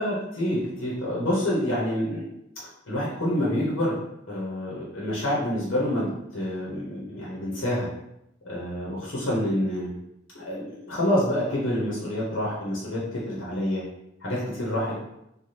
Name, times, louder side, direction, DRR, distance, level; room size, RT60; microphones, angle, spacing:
voice 1, 0.0-2.2 2.6-4.0 4.3-7.9 8.4-9.9 10.3-13.8 14.2-14.9, left 1 dB, 85° left, -5 dB, 0.9 m, -27 dB
3.2 x 2.3 x 2.8 m, 0.82 s
head